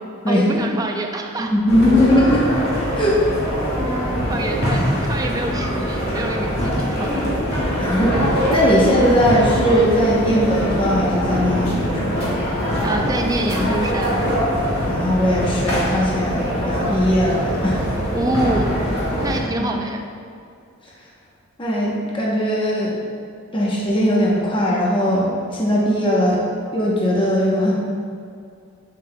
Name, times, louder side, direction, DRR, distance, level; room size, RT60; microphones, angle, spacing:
voice 1, 0.3-1.5 3.8-4.0 4.3-7.3 12.8-14.3 18.1-18.8 19.2-20.0, right 1 dB, 15° right, 2 dB, 0.4 m, -25 dB
voice 2, 1.4-2.5 3.0-3.2 4.4-4.5 7.8-8.2 8.5-12.3 14.9-17.9 19.6-19.7 21.6-22.9 23.5-26.4 26.7-27.7, equal, 25° left, -5 dB, 0.8 m, -19 dB
sound 1, 1.7-19.4, equal, 50° left, 1.5 m, -23 dB
7.5 x 7.3 x 2.2 m, 2.4 s
head